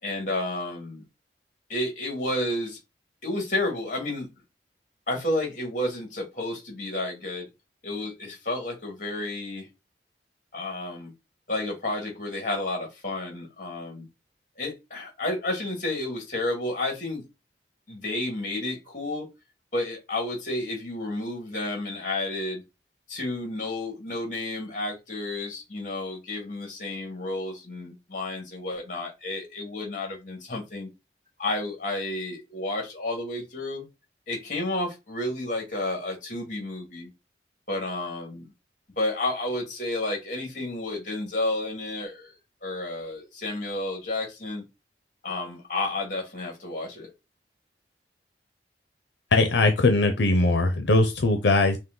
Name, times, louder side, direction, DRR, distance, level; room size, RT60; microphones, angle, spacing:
voice 1, 0.0-1.0 1.7-2.8 3.2-4.3 5.1-7.5 7.8-9.7 10.5-11.1 11.5-14.1 14.6-17.2 17.9-19.3 19.7-22.6 23.1-30.9 31.4-33.8 34.3-37.1 37.7-38.5 39.0-42.3 42.6-44.6 45.2-47.1, left 2 dB, 45° left, 2.1 m, -31 dB
voice 2, 49.3-51.8, left 2 dB, 90° left, 0.7 m, -20 dB
5.3 x 2.6 x 3.9 m
head